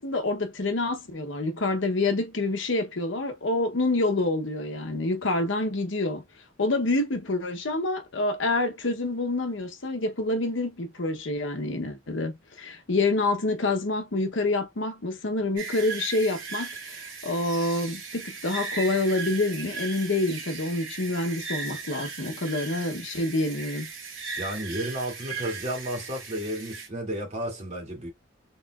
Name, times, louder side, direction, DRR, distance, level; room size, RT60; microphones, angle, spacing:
voice 1, 0.0-6.2 6.6-23.9, left 2 dB, 65° left, 0.9 m, -27 dB
sound 1, 15.6-26.9, right 4 dB, 80° right, 2.2 m, -37 dB
voice 2, 24.4-28.1, right 1 dB, 35° right, 2.4 m, -32 dB
4.2 x 3.8 x 2.4 m
head